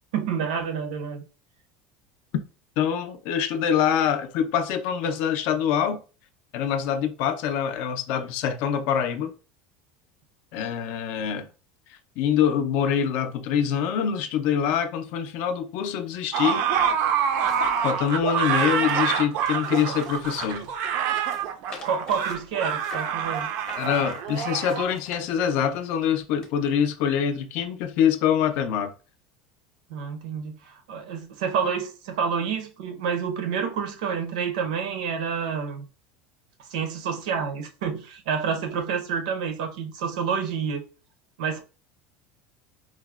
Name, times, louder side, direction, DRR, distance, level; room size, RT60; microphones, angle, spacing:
voice 1, 0.1-1.2 21.8-23.5 29.9-35.9 36.6-40.8 41.4-41.6, right 6 dB, 90° right, 0.6 m, -28 dB
voice 2, 2.8-6.0 6.5-9.3 10.5-11.5 12.2-16.6 17.8-20.7 23.8-28.9, left 8 dB, 50° left, 0.4 m, -25 dB
sound 1, 16.3-24.8, right 8 dB, 45° right, 0.3 m, -26 dB
sound 2, 17.2-20.7 21.1-25.7 26.4-26.5, left 3 dB, 20° left, 0.7 m, -46 dB
4.5 x 2.0 x 2.3 m
cardioid pair, 175°, 4 cm